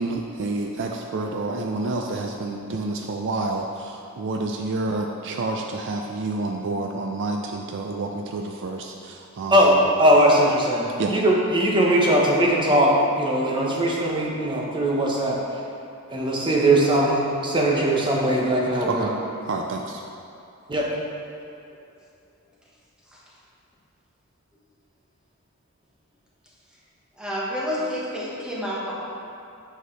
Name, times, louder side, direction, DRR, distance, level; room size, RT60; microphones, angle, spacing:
voice 1, 0.0-9.8 11.0-11.1 11.9-12.1 18.9-19.1 19.5-20.0, right 2 dB, 55° right, 2 dB, 0.4 m, -29 dB
voice 2, 10.0-15.4 16.1-19.1 20.7-20.9, right 1 dB, 20° right, -3 dB, 0.9 m, -20 dB
voice 3, 27.2-28.9, equal, 5° right, -7 dB, 1.3 m, -29 dB
8.1 x 5.8 x 3.2 m, 2.6 s
head